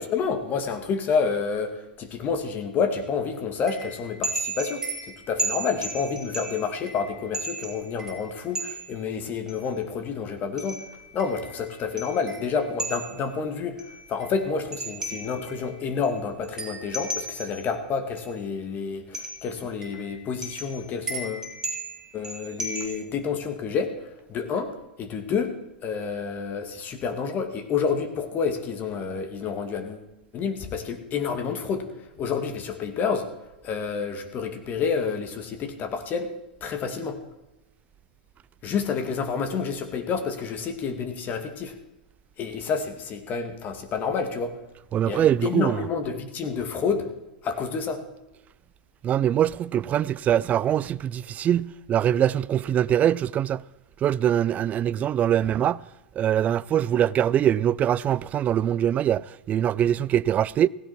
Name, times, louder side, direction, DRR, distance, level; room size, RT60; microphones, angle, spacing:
voice 1, 0.0-10.8 11.1-13.8 14.1-21.5 22.1-24.0 24.3-30.0 30.3-31.9 32.2-33.3 33.6-36.3 36.6-37.2 38.6-41.7 42.4-44.5 45.0-47.1 47.4-48.0, left 5 dB, 35° left, 2.4 m, -29 dB
sound 1, 3.7-8.9 9.5-9.6 10.6-13.3 13.8-15.7 16.0-16.2 16.4-17.7 18.2-18.3 19.1-19.5 19.8-22.9, right 2 dB, 10° right, 4.3 m, -34 dB
voice 2, 44.9-45.9 49.0-53.6 54.0-55.8 56.2-60.7, right 10 dB, 30° right, 0.4 m, -23 dB
16.5 x 16.5 x 4.5 m
hypercardioid pair, 100°, 5 cm